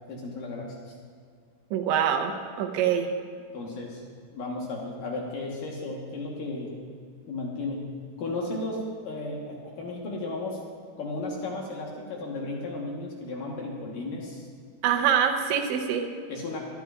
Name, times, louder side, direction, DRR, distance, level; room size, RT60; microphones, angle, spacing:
voice 1, 0.1-0.9 3.5-4.0 4.3-6.7 7.3-7.9 8.2-10.6 11.0-14.5 16.3-16.6, left 2 dB, 70° left, -2 dB, 2.1 m, -34 dB
voice 2, 1.7-3.1 14.8-16.1, right 8 dB, 80° right, 4 dB, 2.9 m, -25 dB
23.5 x 12.5 x 2.5 m, 2.1 s
omnidirectional pair, 5.7 m